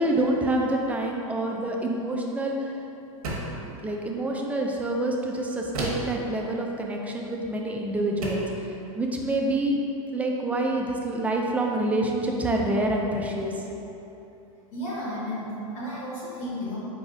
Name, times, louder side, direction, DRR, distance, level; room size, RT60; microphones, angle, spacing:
voice 1, 0.0-2.5 3.8-8.4 9.0-9.7 10.1-13.5, right 1 dB, 10° right, 0 dB, 0.4 m, -27 dB
sound 1, 3.2-3.7 5.7-6.2 7.5-7.7 8.2-8.6, right 1 dB, 85° right, 1.1 m, -31 dB
voice 2, 14.7-16.8, equal, 65° left, -12 dB, 1.5 m, -33 dB
4.8 x 3.9 x 2.6 m, 2.9 s
hypercardioid pair, 120°, 18 cm